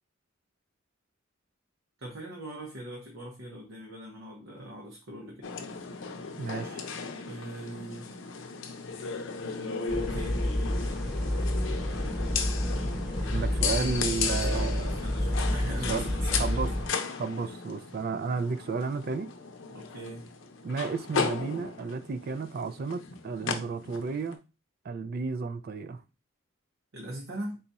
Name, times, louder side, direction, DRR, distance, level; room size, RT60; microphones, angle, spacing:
voice 1, 2.0-5.5 7.2-8.1 9.9-10.4 13.7-16.7 19.7-20.3 26.9-27.6, right 1 dB, 90° right, 0.9 m, -41 dB
sound 1, 5.4-24.3, left 5 dB, 70° left, 0.6 m, -35 dB
voice 2, 6.4-6.8 13.3-14.9 15.9-16.1 16.4-16.7 17.2-19.3 20.6-24.4 24.8-26.0, right 4 dB, 50° right, 0.4 m, -32 dB
sound 2, 9.9-16.9, left 1 dB, ahead, 1.0 m, -30 dB
3.9 x 2.3 x 4.1 m
head